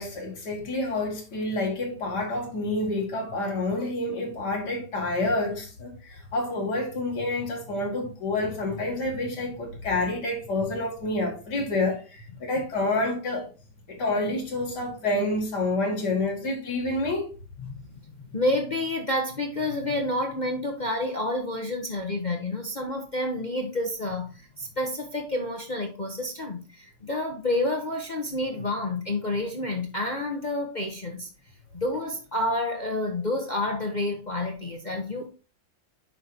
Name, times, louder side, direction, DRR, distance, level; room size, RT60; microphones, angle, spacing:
voice 1, 0.0-13.5 13.9-17.3, left 2 dB, 60° left, 2.7 m, -28 dB
voice 2, 17.6-18.0 18.3-31.3 31.7-35.3, left 1 dB, 40° left, 0.7 m, -29 dB
8.9 x 5.6 x 2.8 m
omnidirectional pair, 2.1 m